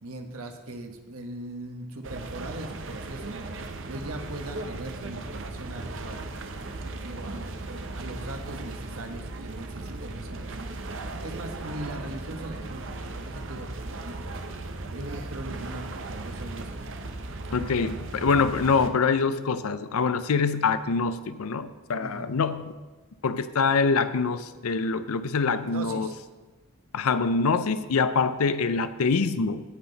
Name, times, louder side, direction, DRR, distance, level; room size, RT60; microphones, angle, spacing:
voice 1, 0.0-3.4 3.9-6.3 6.6-7.5 7.9-10.7 11.2-13.8 14.9-16.8 17.9-18.4 21.9-22.4 25.5-26.1, right 2 dB, 85° right, 5 dB, 1.3 m, -40 dB
sound 1, 2.0-18.9, right 2 dB, 60° right, 0.8 m, -37 dB
voice 2, 17.5-22.7 23.2-26.1 26.9-29.6, left 4 dB, 85° left, 12 dB, 0.5 m, -25 dB
17.0 x 5.8 x 4.0 m, 1.3 s
head